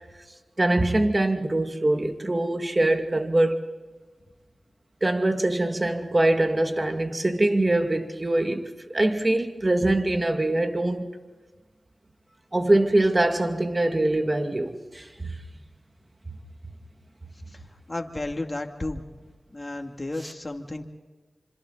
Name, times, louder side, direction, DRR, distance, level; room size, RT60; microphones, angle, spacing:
voice 1, 0.6-3.6 5.0-11.2 12.5-15.4, right 1 dB, 35° right, 2.1 m, -23 dB
voice 2, 17.9-19.0 19.5-20.8, left 2 dB, 35° left, 2.6 m, -32 dB
26.5 x 26.0 x 4.0 m
cardioid pair, 40°, 0 cm